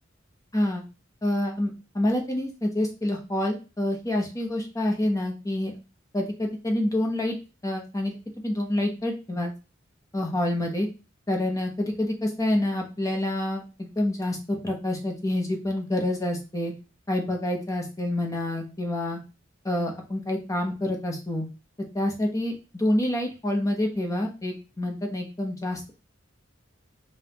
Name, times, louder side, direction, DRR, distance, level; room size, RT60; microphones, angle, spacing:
voice 1, 0.5-0.8 1.2-5.7 6.1-7.4 7.6-9.5 10.1-10.9 11.3-16.7 17.1-19.2 19.6-21.5 21.9-25.9, left 1 dB, 15° left, 2 dB, 0.9 m, -27 dB
5.2 x 2.5 x 2.8 m, 0.31 s
head